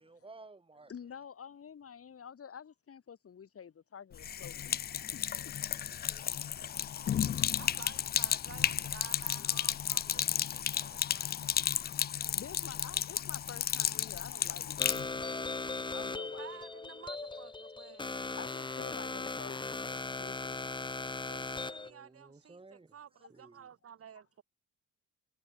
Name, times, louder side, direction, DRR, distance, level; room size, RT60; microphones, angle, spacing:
voice 1, 0.0-0.9 5.8-6.3 21.9-22.9 23.3-23.7, right 3 dB, 20° right, 3.2 m, -55 dB
voice 2, 0.9-4.7 5.1-5.2 6.6-7.4 12.2-16.5 17.3-17.4 18.4-21.3, left 7 dB, 50° left, 5.2 m, -50 dB
Sink (filling or washing), 4.1-15.1, left 9 dB, 35° left, 0.4 m, -33 dB
voice 3, 7.6-11.7 16.1-18.2 21.3-24.4, right 8 dB, 50° right, 2.1 m, -52 dB
sound 1, 14.8-21.9, left 3 dB, 15° left, 1.0 m, -38 dB
cardioid pair, 90°, 30 cm